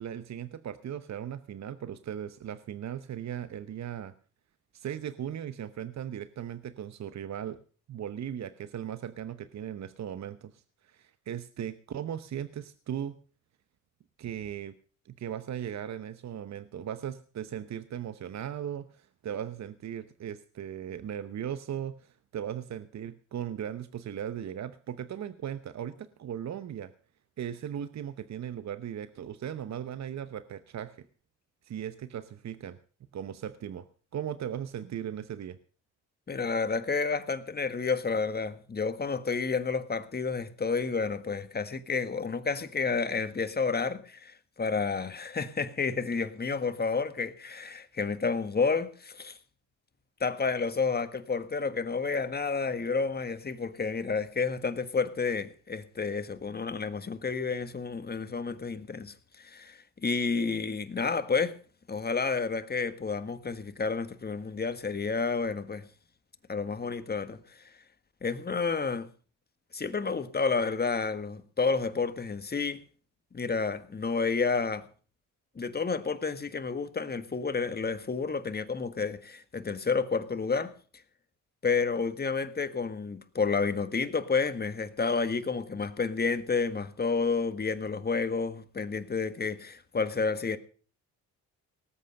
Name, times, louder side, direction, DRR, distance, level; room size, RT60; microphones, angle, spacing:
voice 1, 0.0-4.1 4.7-7.6 7.9-13.2 14.2-14.7 15.0-26.9 27.4-31.1 31.6-32.8 33.1-33.9 34.1-35.6, right 9 dB, 55° right, 0.9 m, -38 dB
voice 2, 36.3-49.4 50.2-61.6 61.9-65.8 66.5-67.7 68.2-69.1 69.7-72.8 73.3-74.9 75.5-80.7 81.6-90.6, left 4 dB, 30° left, 1.6 m, -30 dB
18.5 x 8.3 x 6.5 m
cardioid pair, 80°, 33 cm